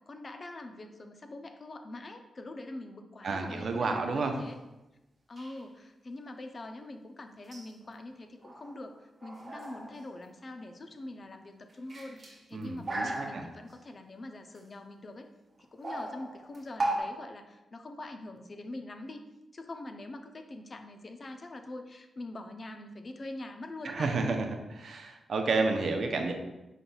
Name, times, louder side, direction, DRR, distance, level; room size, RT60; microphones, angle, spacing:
voice 1, 0.1-4.6 5.3-15.3 15.6-19.3 19.5-24.2, left 2 dB, 45° left, 6 dB, 0.5 m, -44 dB
sound 1, 3.2-3.6 5.4-5.6 7.4-7.9 8.4-8.9 9.2-11.0 11.7-13.8 14.5-14.6 15.6-17.0, right 2 dB, 45° right, 1.2 m, -37 dB
voice 2, 3.2-4.3 12.5-13.4 23.8-26.3, right 3 dB, 70° right, 4 dB, 0.6 m, -31 dB
5.4 x 3.9 x 2.3 m, 0.98 s
cardioid pair, 55°, 0 cm